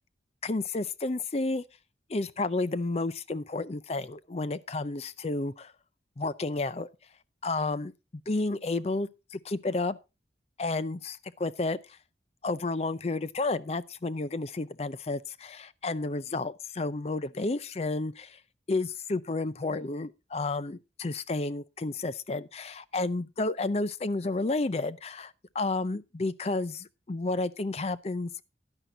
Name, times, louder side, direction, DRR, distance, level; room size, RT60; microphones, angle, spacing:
voice 1, 0.4-1.6 2.1-5.7 6.2-6.9 7.4-7.9 8.3-9.1 9.4-10.0 10.6-11.8 12.4-18.4 18.7-28.4, left 3 dB, 35° left, 0.5 m, -31 dB
11.0 x 10.0 x 3.8 m
head